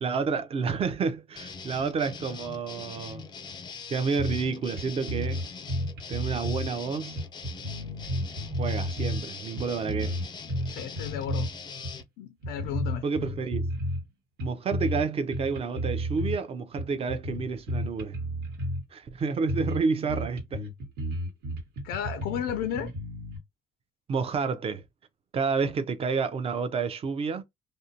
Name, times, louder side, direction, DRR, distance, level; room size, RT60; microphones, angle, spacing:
voice 1, 0.0-3.3 3.9-5.4 6.1-7.2 8.6-10.2 13.0-13.7 14.4-18.2 18.9-20.6 24.1-24.8 25.3-27.4, right 5 dB, 35° right, 0.5 m, -29 dB
sound 1, 1.4-12.0, left 5 dB, 25° left, 0.4 m, -42 dB
sound 2, 4.2-4.5 4.8-4.9 5.1-6.7 7.2-9.2 9.6-11.5 11.8-12.0 12.4-14.1 14.4-15.0 15.3-16.4 16.8-18.8 19.2-19.3 19.5-19.8 20.1-23.4, equal, 85° right, 1.3 m, -32 dB
voice 2, 10.7-11.5 12.2-13.0 21.8-22.9, left 9 dB, 85° left, 0.4 m, -33 dB
2.6 x 2.1 x 2.7 m
cardioid pair, 110°, 17 cm